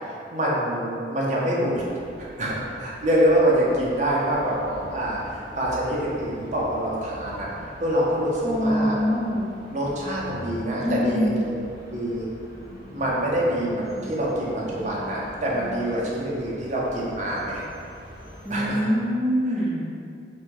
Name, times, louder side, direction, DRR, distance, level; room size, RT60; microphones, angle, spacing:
voice 1, 0.0-1.8 2.2-7.5 7.8-9.0 9.7-11.3 11.9-12.3 12.9-17.6 18.5-18.9, right 1 dB, 40° right, -5 dB, 0.8 m, -25 dB
sound 1, 1.7-18.7, left 1 dB, 55° left, 1.1 m, -43 dB
voice 2, 8.4-9.5 10.8-11.4 18.4-19.8, equal, ahead, -10 dB, 0.9 m, -24 dB
4.1 x 2.3 x 4.6 m, 2.4 s
head